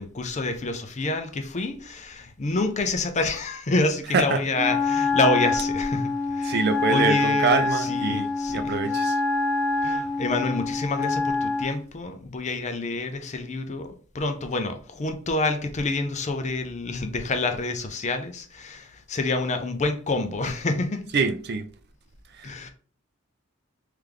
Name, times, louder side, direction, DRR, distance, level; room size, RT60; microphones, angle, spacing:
voice 1, 0.0-8.9 9.8-21.0 22.4-22.7, left 2 dB, 35° left, 0.6 m, -28 dB
Wind instrument woodwind instrument, 4.5-11.8, left 3 dB, 15° left, 1.5 m, -26 dB
voice 2, 6.4-9.2 21.1-21.7 22.4-22.7, right 4 dB, 50° right, 0.5 m, -25 dB
3.4 x 3.2 x 3.7 m
head